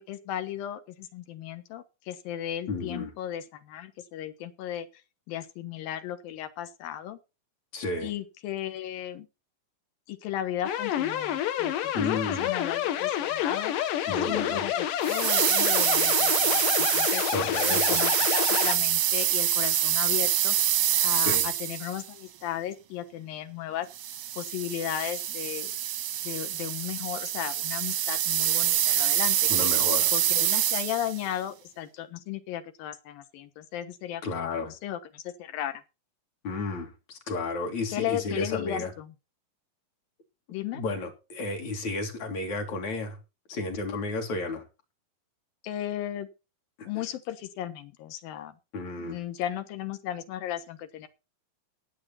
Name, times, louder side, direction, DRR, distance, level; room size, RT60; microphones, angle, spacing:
voice 1, 0.0-4.9 5.3-7.2 8.0-9.3 10.1-11.9 12.3-13.7 14.1-17.2 17.7-20.6 21.0-23.9 24.4-25.7 26.2-29.7 30.1-35.8 37.9-39.1 40.5-40.8 45.6-46.3 46.8-48.6 49.0-51.1, left 11 dB, 90° left, 10 dB, 3.1 m, -35 dB
voice 2, 2.7-3.1 7.7-8.1 11.9-12.5 14.1-14.6 17.3-18.0 21.2-21.5 29.5-30.1 34.2-34.7 36.4-38.9 40.7-43.2 43.5-44.7 46.8-47.0 48.7-49.2, left 3 dB, 55° left, 3 dB, 3.4 m, -32 dB
sound 1, 10.6-18.8, left 10 dB, 75° left, 2.7 m, -28 dB
sound 2, 15.0-22.1 23.9-31.2, right 11 dB, 70° right, 1.5 m, -26 dB
18.5 x 7.8 x 4.2 m, 0.29 s
omnidirectional pair, 4.0 m